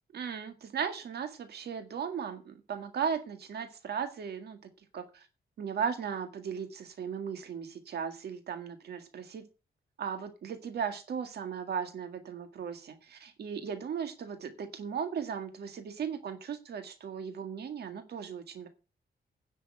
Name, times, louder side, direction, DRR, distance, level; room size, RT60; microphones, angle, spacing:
voice 1, 0.1-4.6 4.9-5.3 5.6-9.4 10.0-18.7, right 7 dB, 70° right, 7 dB, 1.9 m, -37 dB
10.0 x 6.7 x 8.9 m, 0.32 s
wide cardioid pair, 150°, 17 cm